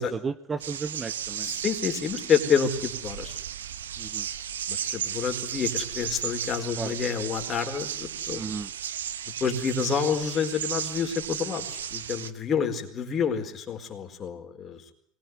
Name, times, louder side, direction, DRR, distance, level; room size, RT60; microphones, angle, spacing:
voice 1, 0.0-1.6 4.0-4.3 6.8-7.0 8.3-8.7, right 5 dB, 20° right, 12 dB, 1.1 m, -34 dB
sound 1, 0.6-12.3, right 9 dB, 70° right, 1.3 m, -34 dB
voice 2, 1.4-3.4 4.7-8.4 9.4-14.8, left 6 dB, 30° left, 5 dB, 4.6 m, -28 dB
24.0 x 20.5 x 9.6 m, 0.63 s
figure-of-eight pair, 75°, 0 cm